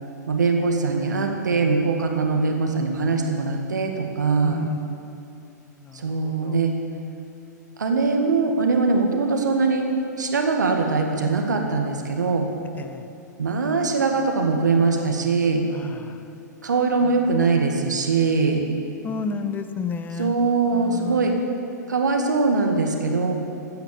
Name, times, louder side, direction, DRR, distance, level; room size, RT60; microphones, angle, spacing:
voice 1, 0.3-4.6 5.9-6.7 7.8-9.9 10.2-12.5 13.4-15.6 16.6-18.6 20.1-21.3 21.9-23.3, right 4 dB, 75° right, 3 dB, 1.9 m, -22 dB
voice 2, 4.4-4.8 5.8-6.6 12.8-13.0 15.7-16.2 17.2-17.3 19.0-20.3 20.7-21.4, left 5 dB, 20° left, 9 dB, 0.9 m, -32 dB
16.0 x 9.2 x 8.5 m, 2.7 s
figure-of-eight pair, 105°, 10 cm